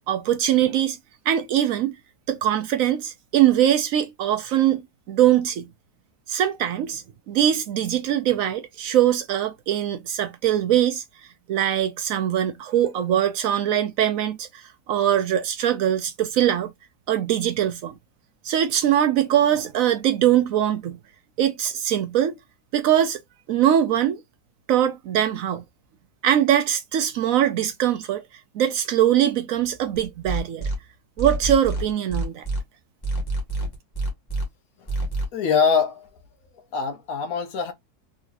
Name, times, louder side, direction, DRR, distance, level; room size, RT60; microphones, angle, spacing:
voice 1, 0.1-1.0 1.3-1.9 2.3-4.8 5.1-5.7 6.3-7.0 7.3-11.0 11.5-14.5 14.9-16.7 17.1-17.9 18.4-21.0 21.4-22.4 22.7-23.2 23.5-24.2 24.7-25.6 26.2-28.2 28.5-30.7 31.2-32.4, right 11 dB, 70° right, 0.9 m, -22 dB
sound 1, 29.9-30.8 31.2-32.6 33.0-34.4 34.9-35.3, right 2 dB, 15° left, 1.4 m, -26 dB
voice 2, 35.3-36.1 36.7-37.7, left 6 dB, 65° left, 1.2 m, -23 dB
3.8 x 3.0 x 2.5 m
omnidirectional pair, 1.7 m